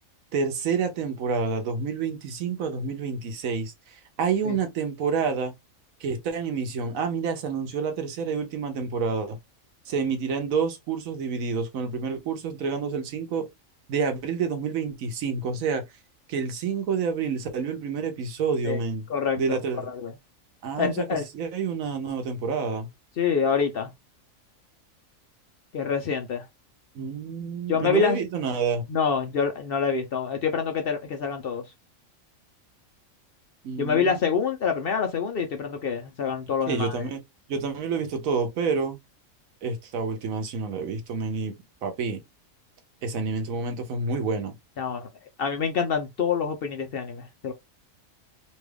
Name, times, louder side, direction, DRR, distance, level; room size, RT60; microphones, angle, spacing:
voice 1, 0.3-5.5 6.0-9.4 9.9-13.5 13.9-15.8 16.3-19.1 19.4-19.9 20.6-21.0 21.3-22.9 26.9-28.8 33.6-34.2 36.7-37.2 37.5-39.0 39.6-41.6 41.8-42.2 43.0-44.6, right 5 dB, 90° right, 1.2 m, -28 dB
voice 2, 19.1-20.1 20.8-21.3 23.2-23.9 25.7-26.5 27.7-28.2 28.9-31.6 33.8-37.0 44.8-45.1 45.4-47.5, left 6 dB, 60° left, 0.7 m, -26 dB
3.0 x 2.3 x 3.2 m
omnidirectional pair, 1.4 m